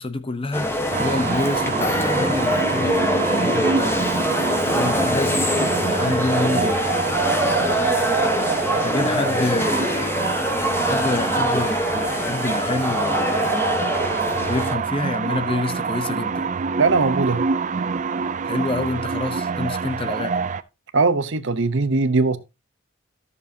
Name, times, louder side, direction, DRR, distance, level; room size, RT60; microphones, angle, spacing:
voice 1, 0.0-4.1 4.4-6.8 8.6-10.2 10.8-13.7 14.3-16.5 18.4-20.4, left 2 dB, 25° left, 0.8 m, -28 dB
sound 1, 0.5-14.7, left 1 dB, 10° left, 1.1 m, -23 dB
sound 2, 0.9-20.6, right 5 dB, 40° right, 0.4 m, -26 dB
Keyboard (musical), 1.2-3.5 3.8-6.6, equal, 20° right, 1.3 m, -38 dB
voice 2, 16.8-17.4 20.9-22.4, right 3 dB, 65° right, 0.9 m, -20 dB
13.5 x 6.8 x 2.8 m
head